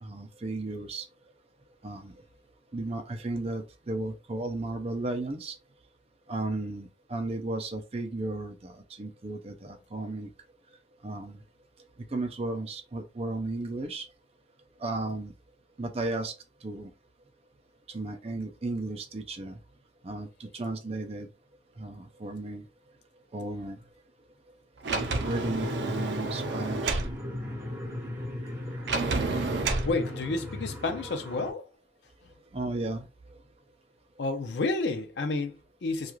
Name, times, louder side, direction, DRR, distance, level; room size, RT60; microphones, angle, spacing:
voice 1, 0.0-1.1 1.8-2.1 2.7-5.6 6.3-10.3 11.0-11.4 12.1-14.1 14.8-15.3 15.8-16.4 16.6-16.9 17.9-19.6 20.0-21.3 21.8-22.7 23.3-23.8 25.2-27.0 32.5-33.1, right 2 dB, 35° right, 0.5 m, -34 dB
Sliding door, 24.8-27.1 28.9-29.9, right 3 dB, 85° right, 0.5 m, -30 dB
sound 1, 25.0-31.5, left 1 dB, 20° right, 1.2 m, -37 dB
voice 2, 29.8-31.7 34.2-36.2, left 3 dB, 75° left, 0.5 m, -30 dB
2.4 x 2.3 x 3.0 m
head